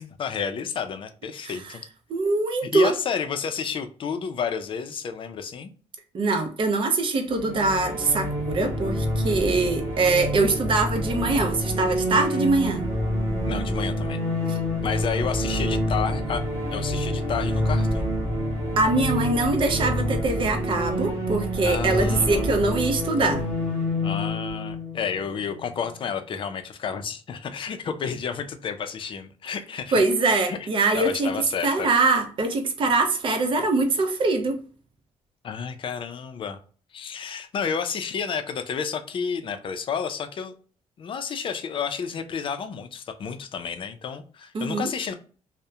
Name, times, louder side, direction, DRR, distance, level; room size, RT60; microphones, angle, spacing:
voice 1, 0.0-1.8 2.6-5.7 13.4-14.2 14.8-16.4 16.7-18.2 21.6-22.7 24.0-30.0 30.5-30.7 30.9-31.9 35.4-36.6 36.9-40.5 41.0-45.1, left 6 dB, 45° left, 0.4 m, -31 dB
voice 2, 2.1-2.9 6.1-12.8 14.5-14.6 18.8-23.5 29.9-31.3 31.6-34.6 44.5-44.9, right 3 dB, 45° right, 0.5 m, -23 dB
sound 1, 7.4-26.0, equal, 25° right, 1.3 m, -27 dB
2.7 x 2.1 x 2.3 m
cardioid pair, 140°, 12 cm